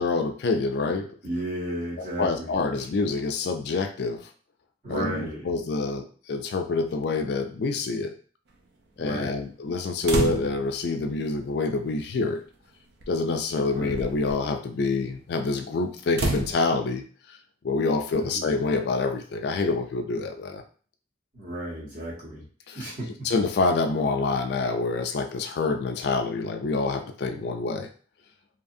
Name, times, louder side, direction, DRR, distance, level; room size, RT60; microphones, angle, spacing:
voice 1, 0.0-1.1 2.0-4.3 4.9-8.1 9.0-12.4 13.1-17.0 17.6-20.6 22.7-22.9 23.2-27.9, left 3 dB, 55° left, 6 dB, 0.3 m, -27 dB
voice 2, 1.2-2.5 4.8-5.5 9.0-9.4 13.7-14.0 18.1-18.4 21.3-22.4 22.7-23.3, right 1 dB, 45° right, -7 dB, 1.2 m, -34 dB
sound 1, 10.1-10.8 12.0-12.1 13.0-13.2 13.7-14.3 16.1-16.5, right 2 dB, 60° right, 0.5 m, -28 dB
2.8 x 2.4 x 2.6 m, 0.43 s
head